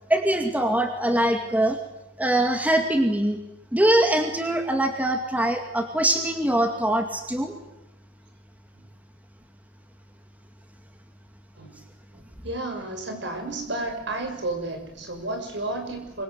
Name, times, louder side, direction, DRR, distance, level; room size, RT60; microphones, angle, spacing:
voice 1, 0.1-1.8 2.2-3.4 3.7-7.5, right 1 dB, 10° right, 4 dB, 2.2 m, -23 dB
voice 2, 12.1-16.2, right 2 dB, 65° right, 4 dB, 6.3 m, -32 dB
25.5 x 23.0 x 8.1 m, 0.91 s
head